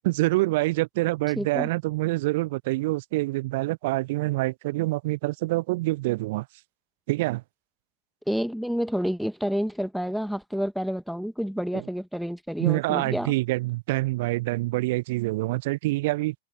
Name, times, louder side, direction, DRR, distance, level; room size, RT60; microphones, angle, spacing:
voice 1, 0.0-6.5 7.1-7.4 11.7-11.8 12.6-16.3, right 20 dB, 50° right, 0.5 m, -26 dB
voice 2, 1.4-1.7 8.3-13.3, equal, ahead, 1.5 m, -29 dB
open air
figure-of-eight pair, 90°, 0 cm